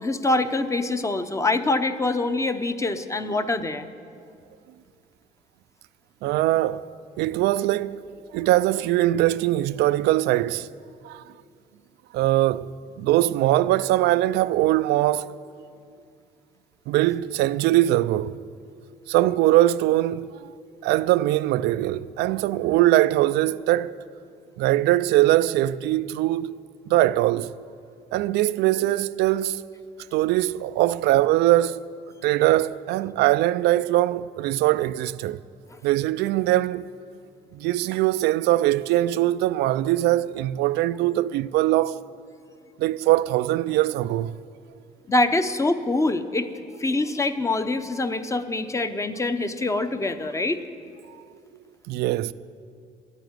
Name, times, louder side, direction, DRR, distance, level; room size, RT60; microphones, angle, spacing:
voice 1, 0.0-3.9 45.1-46.5 46.8-50.6, left 2 dB, 20° left, 0.7 m, -24 dB
voice 2, 6.2-6.9 7.2-8.0 8.3-10.7 11.0-11.2 12.1-15.3 16.9-18.4 19.1-20.5 20.8-24.0 24.6-27.5 28.1-29.6 30.1-31.8 32.2-35.4 35.8-36.9 37.5-42.0 42.8-44.4 51.9-52.3, right 15 dB, 80° right, 0.4 m, -22 dB
12.5 x 9.2 x 9.6 m
cardioid pair, 110°, 17 cm